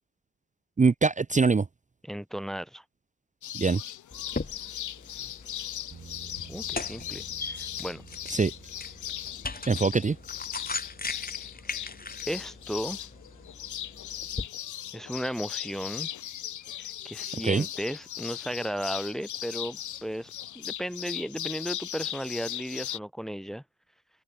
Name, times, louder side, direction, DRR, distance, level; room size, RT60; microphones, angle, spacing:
voice 1, 0.8-1.6 3.6-3.8 8.3-8.5 9.7-10.2 17.4-17.6, right 4 dB, 25° right, 0.7 m, -23 dB
voice 2, 2.0-2.8 6.5-8.0 12.3-13.0 14.9-16.1 17.0-20.3 20.5-23.6, equal, ahead, 0.9 m, -35 dB
sound 1, 3.4-23.0, left 11 dB, 75° left, 1.1 m, -38 dB
sound 2, 4.1-14.5, left 3 dB, 30° left, 4.5 m, -40 dB
sound 3, 5.9-18.2, right 6 dB, 55° right, 7.0 m, -55 dB
supercardioid pair, 50°, 30 cm